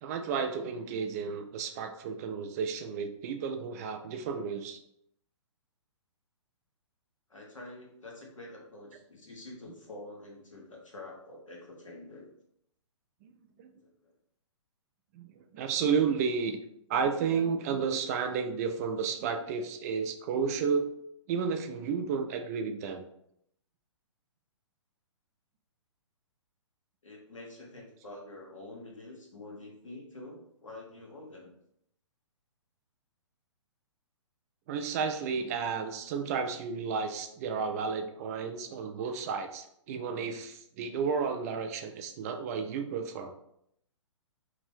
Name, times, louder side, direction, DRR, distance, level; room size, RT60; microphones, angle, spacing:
voice 1, 0.0-4.8 13.2-13.3 13.6-13.7 15.1-16.6 16.9-20.9 21.3-23.0 34.7-43.3, right 6 dB, 30° right, 6 dB, 0.3 m, -32 dB
voice 2, 7.3-12.3 13.8-14.1 27.0-31.5, left 2 dB, 85° left, -1 dB, 1.0 m, -47 dB
2.7 x 2.5 x 3.4 m, 0.74 s
figure-of-eight pair, 125°, 16 cm